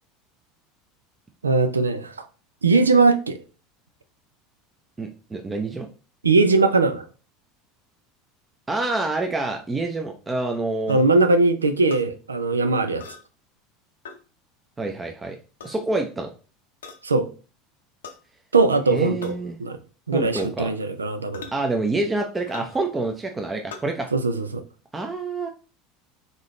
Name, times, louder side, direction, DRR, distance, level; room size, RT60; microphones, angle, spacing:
voice 1, 1.4-2.3 2.6-3.4 6.2-7.1 10.9-13.0 17.0-17.3 18.5-19.3 19.6-19.8 20.1-21.5 24.1-24.6, right 3 dB, 85° right, 0.4 m, -20 dB
voice 2, 5.0-5.9 8.7-11.0 14.8-15.4 15.6-16.3 18.9-19.6 20.1-20.7 21.5-24.1 24.9-25.5, right 2 dB, 15° right, 0.6 m, -27 dB
sound 1, 10.9-11.1 11.9-12.0 13.0-13.3 14.1-14.2 15.4-15.8 16.8-17.0 18.0-18.2 19.2-19.4 20.4-20.6 21.3-21.6 22.5-22.8 23.7-23.9, left 5 dB, 75° left, 0.6 m, -40 dB
3.9 x 3.8 x 3.2 m
figure-of-eight pair, 75°, 0 cm